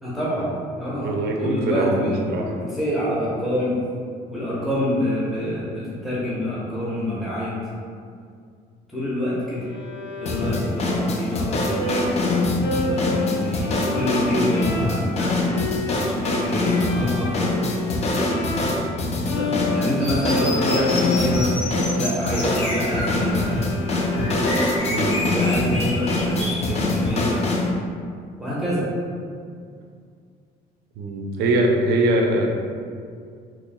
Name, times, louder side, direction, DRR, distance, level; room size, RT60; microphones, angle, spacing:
voice 1, 0.0-1.1 1.4-2.2 2.6-3.8 4.3-7.5 8.9-9.7 10.2-12.2 12.8-15.5 15.9-17.6 19.3-21.5 22.0-23.5 25.0-27.4 28.4-28.9, left 1 dB, ahead, -8 dB, 0.8 m, -27 dB
voice 2, 1.0-2.5 24.9-25.3 31.0-32.5, right 1 dB, 70° right, 1 dB, 0.6 m, -22 dB
Bowed string instrument, 9.6-19.0 19.2-25.1, left 2 dB, 85° left, 0.5 m, -31 dB
sound 1, 10.3-27.7, left 2 dB, 40° left, 0.5 m, -24 dB
sound 2, 20.0-26.6, left 1 dB, 65° left, 1.2 m, -30 dB
4.5 x 3.0 x 2.2 m, 2.2 s
cardioid pair, 110°, 17 cm